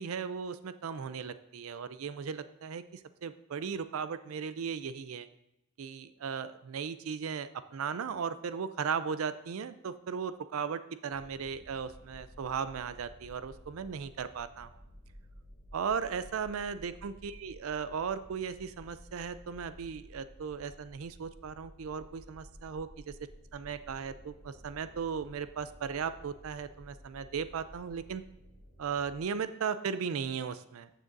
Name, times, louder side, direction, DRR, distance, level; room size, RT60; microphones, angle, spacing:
voice 1, 0.0-5.3 5.8-14.7 15.7-23.1 23.5-28.2 28.8-30.9, right 6 dB, 80° right, 13 dB, 0.4 m, -37 dB
sound 1, 11.1-29.2, equal, 60° left, 2.4 m, -54 dB
14.5 x 6.3 x 2.6 m, 0.86 s
head